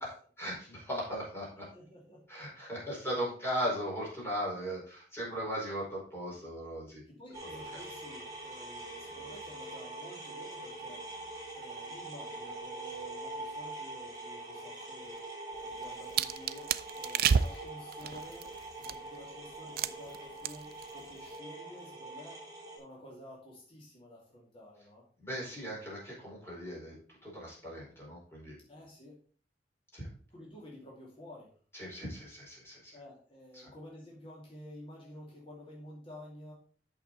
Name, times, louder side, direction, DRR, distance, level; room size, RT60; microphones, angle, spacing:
voice 1, 0.0-1.7 2.3-7.0 7.5-7.6 25.2-26.9 27.2-28.6 29.9-30.1 31.7-32.9 33.5-33.7, equal, 15° left, -5 dB, 4.6 m, -38 dB
voice 2, 1.7-2.2 7.1-11.1 11.5-15.2 15.6-16.7 16.9-22.4 22.8-25.0 28.7-29.2 30.3-31.5 32.9-36.5, left 1 dB, 30° left, -4 dB, 2.6 m, -51 dB
sound 1, 7.3-22.8, right 2 dB, 20° right, 4.5 m, -44 dB
sound 2, 15.6-19.2 19.8-20.2 20.4-20.8 21.1-21.4, right 7 dB, 60° right, 0.4 m, -31 dB
8.5 x 6.7 x 4.1 m, 0.43 s
head